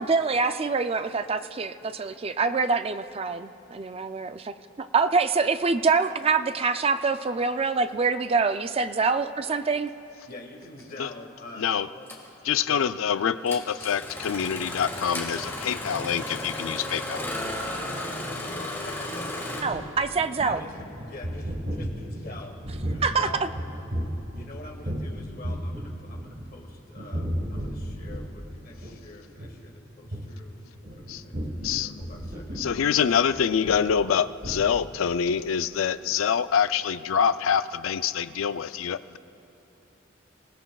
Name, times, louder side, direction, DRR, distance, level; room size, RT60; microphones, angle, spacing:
voice 1, 0.0-9.9 19.6-20.6 23.0-23.3, right 4 dB, 30° right, 10 dB, 0.4 m, -25 dB
voice 2, 10.2-12.1 12.7-12.9 18.2-19.6 20.4-22.5 22.9-23.5 24.3-33.5, left 2 dB, 45° left, 0 dB, 1.8 m, -45 dB
Engine starting, 10.8-10.9 12.1-12.3 13.5-19.6, left 1 dB, 10° left, 1.8 m, -34 dB
voice 3, 12.4-17.3 31.1-31.2 31.6-31.9 32.6-39.2, left 7 dB, 85° left, 13 dB, 0.4 m, -25 dB
sound 1, 19.2-25.1 25.4-26.6 27.0-28.5 28.8-29.0 29.3-29.5 30.1-30.3 30.8-34.2 34.4-34.6, equal, 50° right, 1.7 m, -34 dB
25.5 x 17.0 x 2.3 m, 2.9 s
head